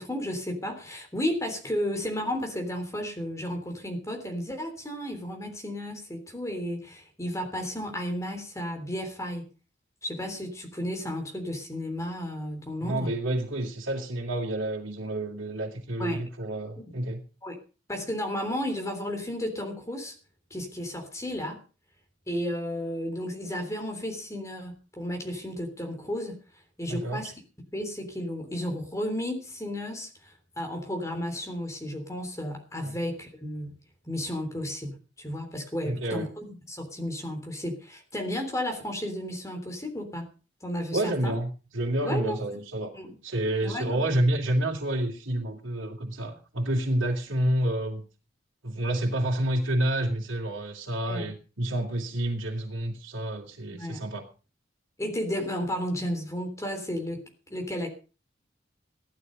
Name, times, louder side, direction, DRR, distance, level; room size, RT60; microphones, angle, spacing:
voice 1, 0.0-9.5 10.0-13.2 16.0-16.3 16.8-16.9 17.4-17.6 17.9-20.2 20.5-21.6 22.3-26.4 26.8-27.3 27.7-33.8 34.1-40.3 40.6-41.4 42.0-42.4 42.9-43.2 43.6-44.0 51.1-51.3 53.7-54.0 55.0-57.9, equal, 15° left, 4 dB, 3.4 m, -33 dB
voice 2, 12.8-17.2 26.9-27.2 32.8-33.0 35.8-36.3 40.9-42.9 43.2-48.0 48.6-54.2, right 1 dB, 85° right, -3 dB, 2.8 m, -29 dB
15.5 x 11.5 x 5.3 m, 0.34 s
head